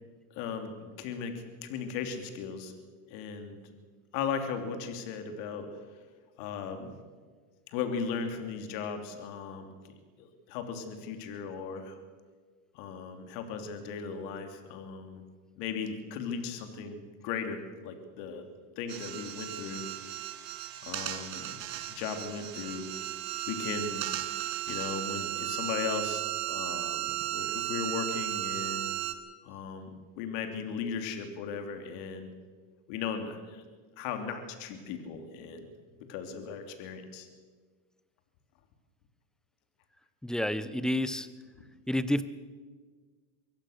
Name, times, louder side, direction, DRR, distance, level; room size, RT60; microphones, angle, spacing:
voice 1, 0.3-2.7 3.1-3.6 4.1-5.8 6.4-7.0 7.7-12.0 12.7-15.2 15.6-18.5 18.8-19.9 20.8-21.6 21.9-22.9 23.5-24.0 24.7-28.9 29.4-32.3 32.9-33.6 34.0-35.7 36.1-37.3, left 6 dB, 65° left, 7 dB, 3.0 m, -37 dB
sound 1, 18.9-29.1, right 15 dB, 45° right, 2.0 m, -35 dB
voice 2, 40.2-41.3 41.9-42.2, left 1 dB, ahead, 14 dB, 0.7 m, -29 dB
23.5 x 17.0 x 6.6 m, 1.5 s
supercardioid pair, 125°, 50 cm